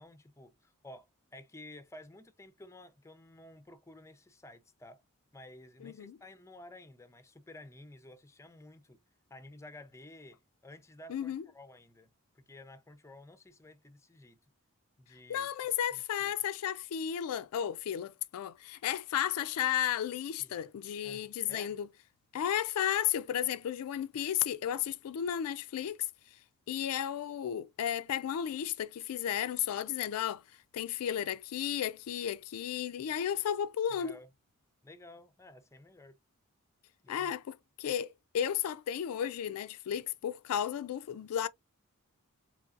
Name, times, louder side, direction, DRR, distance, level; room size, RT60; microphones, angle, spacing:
voice 1, 0.0-5.0 5.3-9.0 9.3-14.4 15.0-15.5 15.9-16.3 20.4-20.5 21.0-21.8 33.9-34.3 34.8-36.2 37.0-37.3, left 1 dB, 15° left, 0.5 m, -53 dB
voice 2, 5.8-6.1 11.1-11.4 15.3-21.9 22.3-26.0 26.7-30.4 30.7-34.1 37.1-41.5, left 10 dB, 75° left, 0.3 m, -33 dB
3.8 x 3.1 x 2.4 m
head